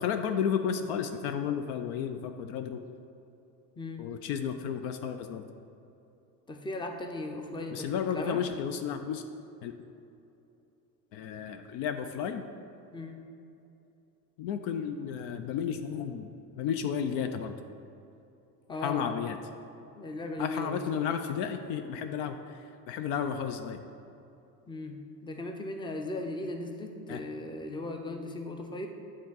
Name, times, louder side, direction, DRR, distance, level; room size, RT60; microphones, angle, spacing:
voice 1, 0.0-2.8 4.0-5.4 7.7-9.2 9.6-9.7 11.1-12.4 14.4-16.3 16.6-17.5 18.8-19.4 20.4-22.6 22.9-23.8 27.1-27.2, left 8 dB, 60° left, 8 dB, 0.5 m, -32 dB
voice 2, 6.5-8.4 12.9-13.2 18.7-19.1 20.0-21.0 24.7-28.9, left 2 dB, 10° left, 4 dB, 0.6 m, -37 dB
8.4 x 3.7 x 3.9 m, 2.8 s
hypercardioid pair, 65°, 48 cm